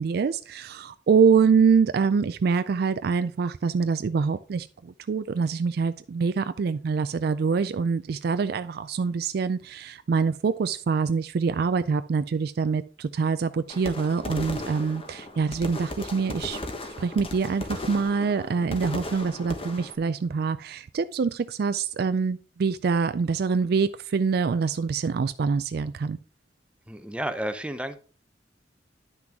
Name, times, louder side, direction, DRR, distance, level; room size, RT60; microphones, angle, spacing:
voice 1, 0.0-16.6 17.0-26.2, right 5 dB, 60° right, 0.4 m, -25 dB
sound 1, 13.7-19.9, left 1 dB, 30° left, 1.3 m, -36 dB
voice 2, 26.9-28.0, right 1 dB, 5° right, 0.6 m, -31 dB
10.5 x 6.0 x 3.6 m
head